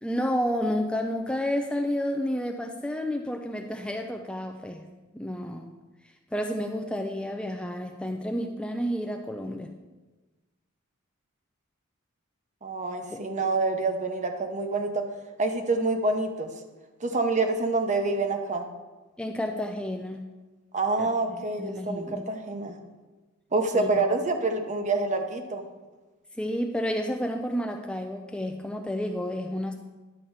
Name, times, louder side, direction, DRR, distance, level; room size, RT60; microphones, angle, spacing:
voice 1, 0.0-4.8 5.1-5.7 6.3-9.7 13.1-13.2 19.2-20.3 21.0-22.2 23.7-24.0 26.3-29.7, equal, 5° left, 3 dB, 0.4 m, -30 dB
voice 2, 12.6-15.0 15.4-16.5 17.0-18.7 20.7-22.8 23.5-25.7, right 3 dB, 35° right, 5 dB, 1.0 m, -27 dB
11.0 x 4.1 x 7.3 m, 1.2 s
head